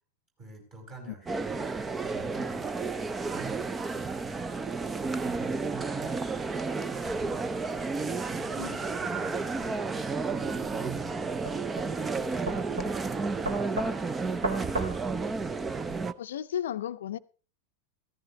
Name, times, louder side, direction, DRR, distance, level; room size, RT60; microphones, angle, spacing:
voice 1, 0.4-1.6 2.0-2.6 3.2-4.5 5.0-6.2 6.6-11.4 11.7-13.3, right 3 dB, 35° right, 5.0 m, -47 dB
sound 1, 1.3-16.1, right 4 dB, 15° right, 0.6 m, -32 dB
sound 2, 10.3-16.0, right 1 dB, 75° right, 2.1 m, -37 dB
voice 2, 16.2-17.2, left 10 dB, 60° left, 0.6 m, -34 dB
14.5 x 14.5 x 3.0 m
figure-of-eight pair, 90°, 0 cm